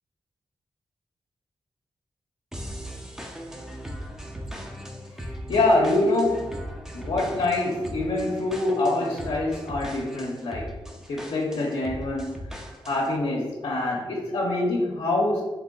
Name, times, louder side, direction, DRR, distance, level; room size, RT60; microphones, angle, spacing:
sound 1, 2.5-13.2, equal, 5° right, 0.5 m, -38 dB
voice 1, 5.5-6.5 6.9-10.7 11.1-12.4 12.9-15.4, left 2 dB, 75° left, -3 dB, 0.7 m, -25 dB
3.6 x 2.9 x 3.8 m, 1.2 s
wide cardioid pair, 100°, 9 cm